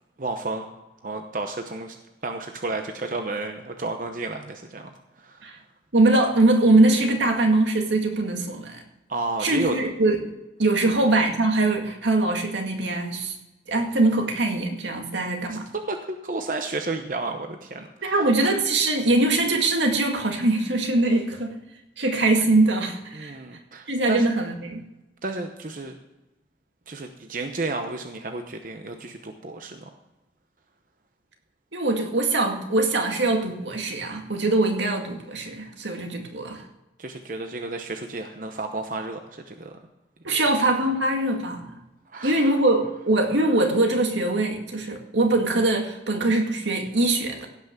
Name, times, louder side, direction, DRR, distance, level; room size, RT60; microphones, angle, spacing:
voice 1, 0.2-0.6 1.0-2.0 2.2-4.9 5.2-5.4 9.1-9.8 15.7-18.1 23.1-24.3 25.2-26.0 26.9-29.9 37.0-39.7 40.3-40.4 42.1-42.5, right 3 dB, 45° right, 5 dB, 0.9 m, -32 dB
voice 2, 5.9-8.8 9.4-10.3 10.6-13.4 13.7-15.7 18.0-21.5 22.0-23.4 23.9-24.8 31.7-36.6 40.2-41.7 42.2-47.5, right 2 dB, 85° right, 3 dB, 2.1 m, -22 dB
16.5 x 5.9 x 6.6 m, 0.99 s
head